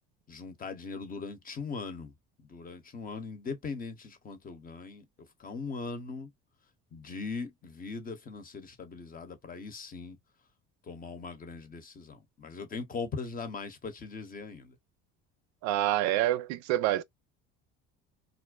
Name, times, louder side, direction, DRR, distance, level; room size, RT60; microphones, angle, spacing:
voice 1, 0.3-2.1 2.4-5.1 5.4-6.3 6.9-10.2 10.8-14.8, left 4 dB, 30° left, 0.8 m, -40 dB
voice 2, 15.6-17.0, right 14 dB, 70° right, 0.5 m, -27 dB
2.5 x 2.1 x 2.3 m
supercardioid pair, 85°, 29 cm